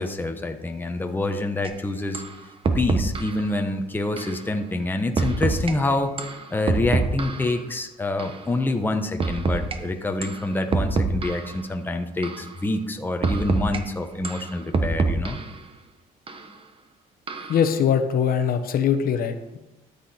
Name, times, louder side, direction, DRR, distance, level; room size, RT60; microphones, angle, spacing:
voice 1, 0.0-2.2 2.7-6.2 6.5-15.4, left 2 dB, 10° left, 5 dB, 1.1 m, -26 dB
sound 1, 1.6-1.7 2.1-2.3 2.6-3.4 4.2-4.4 5.2-5.7 6.2-7.6 8.2-8.4 9.2-9.8 10.2-10.4 10.7-11.6 12.2-12.5 13.2-13.8 14.2-15.6 16.3-16.4 17.3-17.6, right 4 dB, 30° right, 1.1 m, -25 dB
voice 2, 17.5-19.6, left 8 dB, 60° left, 9 dB, 1.0 m, -22 dB
13.0 x 8.2 x 4.4 m, 0.96 s
cardioid pair, 110°, 17 cm